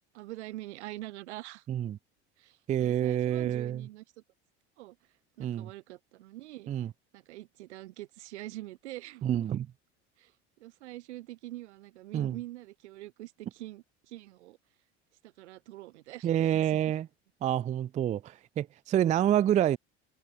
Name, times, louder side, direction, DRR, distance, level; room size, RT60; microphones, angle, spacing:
voice 1, 0.1-1.6 2.4-4.0 4.8-5.0 5.4-6.7 7.1-9.5 10.2-10.3 10.6-14.6 15.2-17.0, right 17 dB, 80° right, 1.3 m, -45 dB
voice 2, 1.7-2.0 2.7-3.9 5.4-5.7 6.7-6.9 9.2-9.7 12.1-12.4 16.2-17.1 17.4-19.8, right 11 dB, 25° right, 0.3 m, -28 dB
hypercardioid pair, 80°, 34 cm